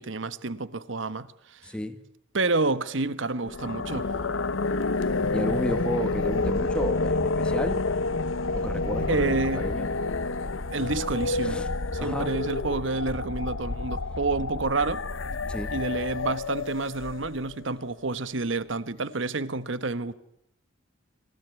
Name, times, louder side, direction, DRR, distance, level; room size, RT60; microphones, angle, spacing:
voice 1, 0.0-1.7 2.3-4.1 9.1-9.7 10.7-11.6 11.9-15.0 15.7-20.1, right 3 dB, 70° right, 1.2 m, -29 dB
voice 2, 1.6-2.0 5.3-7.8 8.5-9.9 11.4-11.7 12.0-12.3 15.5-15.7, equal, 5° left, 1.8 m, -32 dB
sound 1, 3.4-17.6, left 3 dB, 85° left, 1.1 m, -29 dB
26.0 x 17.5 x 9.4 m
head